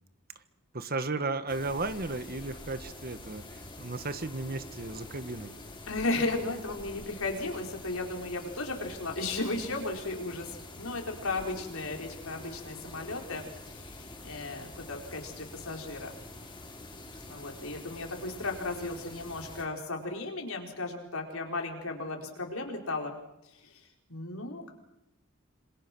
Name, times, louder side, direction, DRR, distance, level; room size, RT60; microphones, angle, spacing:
voice 1, 0.7-5.6, right 3 dB, 45° right, 11 dB, 1.5 m, -34 dB
sound 1, 1.5-19.7, left 2 dB, 20° left, 5.2 m, -46 dB
voice 2, 5.9-16.1 17.3-23.2 23.6-23.8 24.1-24.7, left 2 dB, 75° left, 2 dB, 4.8 m, -35 dB
27.0 x 26.5 x 6.2 m, 0.88 s
head